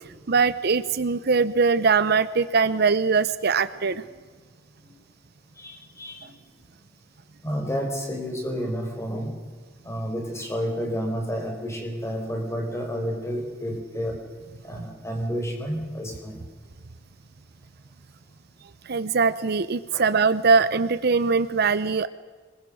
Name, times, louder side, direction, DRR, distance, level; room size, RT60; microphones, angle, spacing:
voice 1, 0.3-4.0 18.9-22.1, right 5 dB, 55° right, 14 dB, 0.7 m, -21 dB
voice 2, 5.6-6.3 7.4-9.4 9.8-14.2 14.6-16.4 19.9-20.0, equal, 15° left, 2 dB, 4.5 m, -30 dB
26.0 x 22.0 x 6.3 m, 1.5 s
head